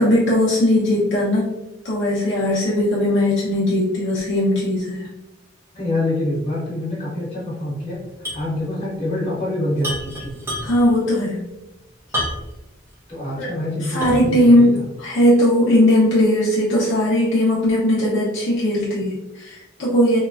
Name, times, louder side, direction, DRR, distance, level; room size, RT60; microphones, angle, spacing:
voice 1, 0.0-1.5 1.8-5.1 10.6-11.4 13.4-13.5 13.8-20.2, left 1 dB, 65° left, -7 dB, 0.6 m, -18 dB
voice 2, 5.7-8.0 8.3-10.4 13.1-14.9, left 1 dB, 30° left, -7 dB, 1.2 m, -26 dB
sound 1, 8.2-8.5 8.8-8.9 9.8-11.0 12.1-12.7 13.2-13.3 14.0-14.4, equal, 15° right, 0.8 m, -28 dB
2.9 x 2.3 x 2.3 m, 0.99 s
head